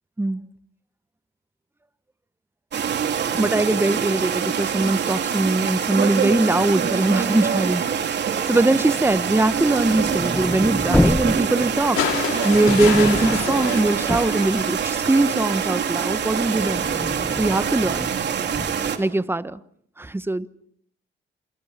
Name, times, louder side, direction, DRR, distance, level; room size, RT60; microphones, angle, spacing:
sound 1, 2.7-19.0, right 7 dB, 60° right, 3.3 m, -25 dB
voice 1, 3.3-8.1 8.5-12.1 12.4-16.9 17.3-18.1 19.0-19.6 20.0-20.5, right 2 dB, 10° right, 1.2 m, -21 dB
sound 2, 9.1-15.2 15.6-18.9, left 1 dB, 5° left, 1.0 m, -29 dB
sound 3, 12.0-15.3 16.6-16.7, left 10 dB, 90° left, 3.2 m, -29 dB
28.0 x 28.0 x 5.9 m
cardioid pair, 90°, 20 cm